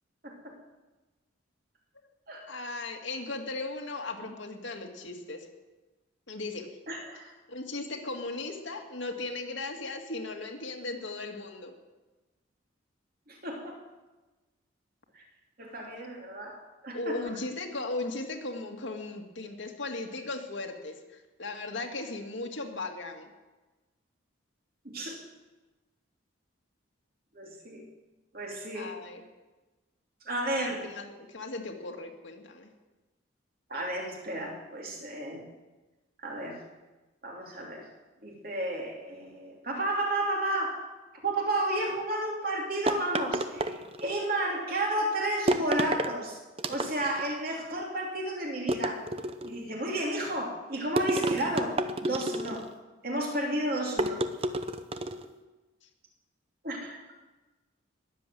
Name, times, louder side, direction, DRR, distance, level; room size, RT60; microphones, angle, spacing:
voice 1, 2.5-5.5 6.3-6.7 7.5-11.7 16.9-23.3 28.7-29.2 30.5-32.7, left 2 dB, 70° left, 3 dB, 2.0 m, -37 dB
voice 2, 6.9-7.3 13.3-13.8 15.1-15.2 15.6-16.6 16.8-17.1 24.8-25.2 27.3-27.8 28.3-28.9 30.2-30.9 33.7-35.5 36.2-36.6 37.2-37.8 38.2-40.8 41.2-46.4 46.7-49.0 49.4-52.6 53.0-54.2 56.6-57.0, right 1 dB, 45° right, -1 dB, 3.1 m, -32 dB
sound 1, 42.9-44.2 45.5-46.1 46.6-47.3 48.7-49.6 51.0-52.7 54.0-55.3, right 1 dB, 30° right, 0.7 m, -30 dB
20.5 x 7.7 x 7.7 m, 1.2 s
head